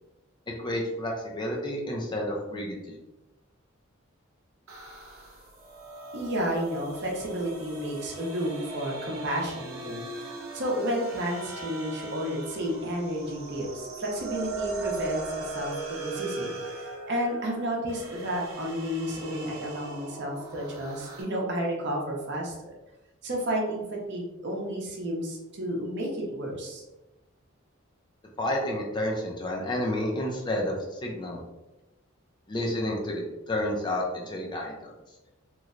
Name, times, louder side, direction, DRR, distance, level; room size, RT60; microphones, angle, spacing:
voice 1, 0.6-3.0 28.4-31.4 32.5-34.9, left 1 dB, 20° left, -1 dB, 0.5 m, -30 dB
sound 1, 4.7-21.2, right 3 dB, 90° right, 0.9 m, -39 dB
voice 2, 6.1-10.2 10.5-15.7 16.0-22.7 23.2-26.8, equal, 55° right, -1 dB, 0.8 m, -31 dB
3.1 x 2.1 x 3.7 m, 1.0 s
head